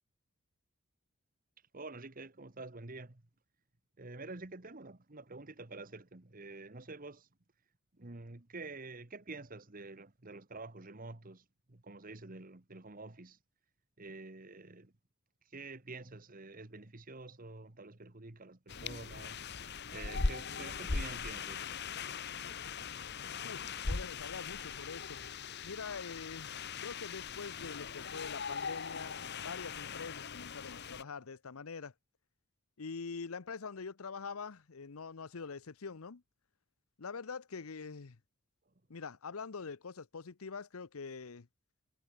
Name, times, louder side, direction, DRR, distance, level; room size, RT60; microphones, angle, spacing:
voice 1, 1.7-3.2 4.0-7.3 8.0-13.4 14.0-14.9 15.5-19.4 19.9-21.6, right 3 dB, 40° right, 1.5 m, -48 dB
sound 1, 18.7-31.0, left 4 dB, 50° left, 1.2 m, -40 dB
voice 2, 23.4-25.2 25.6-26.5 26.8-31.9 32.8-36.2 37.0-38.2 38.9-41.5, left 5 dB, 90° left, 0.8 m, -44 dB
head